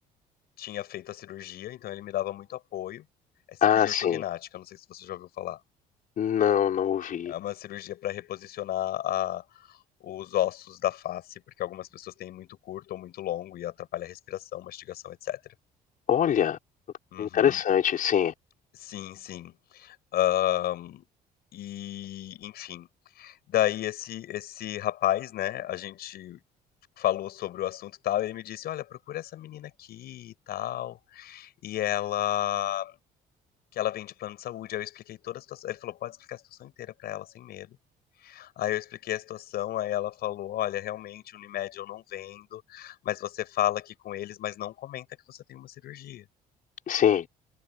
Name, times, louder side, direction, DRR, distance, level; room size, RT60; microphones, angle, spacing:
voice 1, 0.6-3.0 3.5-5.6 7.2-15.4 17.1-17.6 18.7-21.0 21.5-22.9 23.2-26.4 27.0-32.9 33.7-37.8 38.2-46.2, left 13 dB, 70° left, 6.3 m, -33 dB
voice 2, 3.6-4.2 6.2-7.3 16.1-16.6 17.2-18.3 46.9-47.2, left 9 dB, 55° left, 5.4 m, -23 dB
cardioid pair, 110°, 17 cm